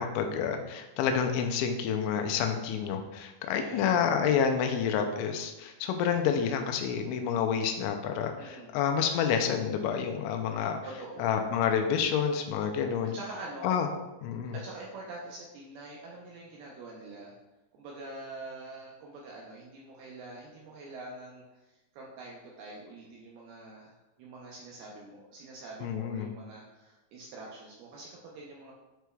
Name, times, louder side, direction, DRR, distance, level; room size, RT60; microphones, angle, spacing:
voice 1, 0.0-10.8 11.2-13.1 13.6-13.9 14.2-14.6 25.8-26.3, left 7 dB, 90° left, 5 dB, 3.0 m, -29 dB
voice 2, 3.5-4.0 8.4-8.8 10.8-11.5 13.1-13.8 14.5-17.3 17.7-28.7, right 2 dB, 80° right, -3 dB, 2.2 m, -45 dB
9.5 x 4.5 x 2.3 m, 1.0 s
omnidirectional pair, 5.2 m